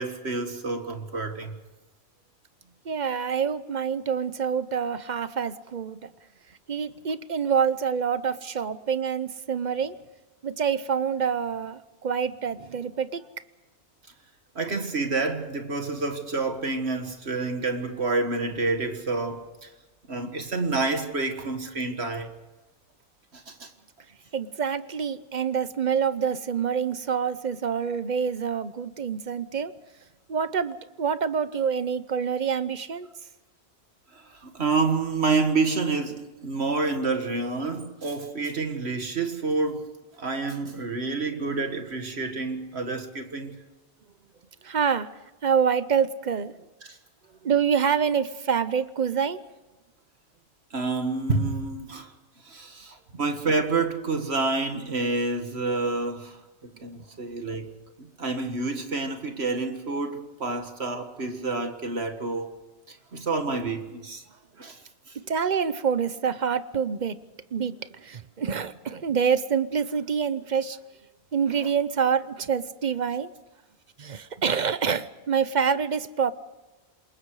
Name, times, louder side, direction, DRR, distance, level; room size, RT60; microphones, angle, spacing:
voice 1, 0.0-1.6 14.6-19.7 20.1-22.3 23.3-23.7 34.1-39.9 40.2-43.6 46.8-47.0 50.7-52.1 52.4-56.4 56.8-57.7 58.0-62.5 62.9-64.2 64.6-64.8 65.1-65.2 71.6-71.7, right 3 dB, 70° right, 2.0 m, -28 dB
voice 2, 2.8-6.1 6.7-10.0 10.4-13.2 24.3-29.7 30.3-33.1 44.6-45.1 45.4-46.5 47.4-49.4 65.3-67.2 67.5-70.8 71.3-73.3 74.0-76.3, right 6 dB, 45° right, 0.9 m, -26 dB
28.0 x 22.0 x 4.9 m
omnidirectional pair, 1.1 m